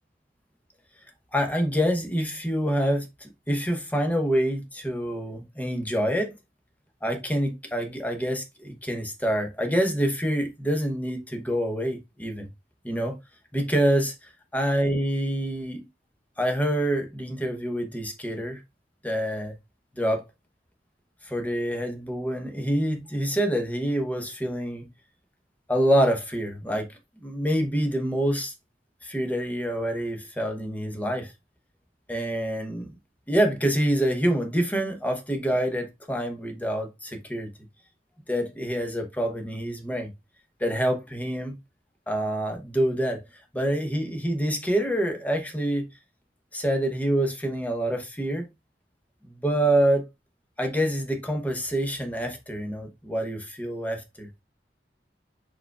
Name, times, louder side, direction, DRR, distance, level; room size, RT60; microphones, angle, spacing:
voice 1, 1.3-6.3 7.0-12.5 12.8-13.2 13.5-15.8 16.4-18.6 19.0-19.6 20.0-20.2 21.2-24.9 25.7-26.9 27.2-28.5 29.0-31.3 32.1-32.9 33.3-37.5 38.3-40.1 40.6-41.5 42.1-43.2 43.5-45.9 46.5-48.5 49.4-50.0 50.6-54.3, right 1 dB, 10° left, 0.9 m, -26 dB
4.6 x 4.6 x 2.3 m
head